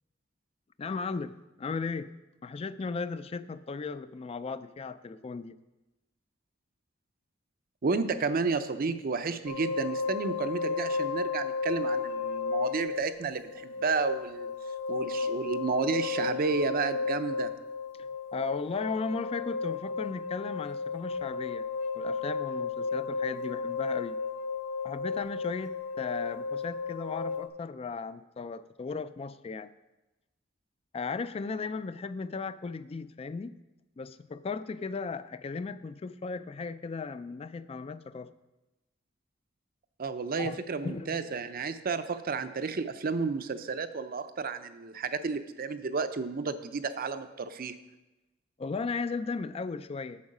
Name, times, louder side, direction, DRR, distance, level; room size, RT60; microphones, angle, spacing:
voice 1, 0.8-2.1 2.4-5.6 18.0-21.7 22.0-24.2 24.8-29.7 30.9-33.5 34.0-38.3 40.3-40.6 40.8-41.2 48.6-50.2, left 4 dB, 30° left, 14 dB, 0.3 m, -36 dB
voice 2, 7.8-14.5 14.9-17.5 40.0-47.8, right 4 dB, 50° right, 11 dB, 0.5 m, -31 dB
sound 1, 9.5-27.5, left 5 dB, 75° left, 1.2 m, -34 dB
8.5 x 7.1 x 5.4 m, 1.0 s
head